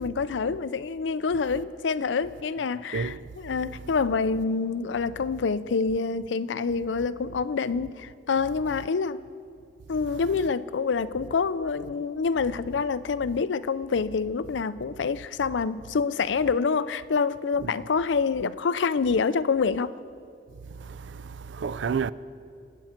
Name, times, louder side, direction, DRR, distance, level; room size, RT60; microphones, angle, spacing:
voice 1, 0.0-9.2 9.9-20.0, left 5 dB, 85° left, 0.5 m, -27 dB
voice 2, 20.8-22.1, right 6 dB, 85° right, 0.4 m, -31 dB
26.5 x 9.0 x 4.4 m
head